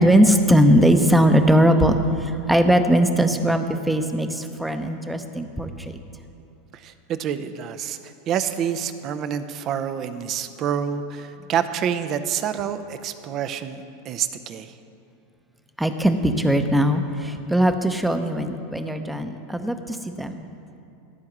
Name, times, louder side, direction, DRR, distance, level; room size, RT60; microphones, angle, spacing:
voice 1, 0.0-5.9 15.8-20.5, equal, 5° right, 7 dB, 0.7 m, -20 dB
voice 2, 6.7-14.7, right 8 dB, 45° right, 10 dB, 0.6 m, -28 dB
13.5 x 4.7 x 7.3 m, 2.8 s
hypercardioid pair, 95°, 0 cm